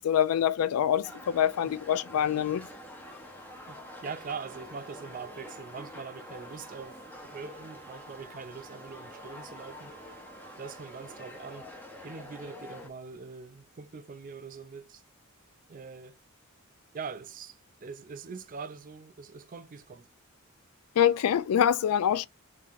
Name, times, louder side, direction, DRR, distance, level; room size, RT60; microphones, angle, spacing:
voice 1, 0.0-2.7 21.0-22.3, left 9 dB, 85° left, 0.3 m, -25 dB
sound 1, 1.0-12.9, left 1 dB, 10° left, 0.8 m, -47 dB
voice 2, 2.1-2.4 3.7-10.0 10.6-11.7 12.0-15.0 15.7-16.2 16.9-20.1, right 5 dB, 40° right, 0.4 m, -43 dB
sound 2, 3.0-11.7, right 8 dB, 45° left, 1.6 m, -56 dB
5.5 x 2.8 x 2.4 m
head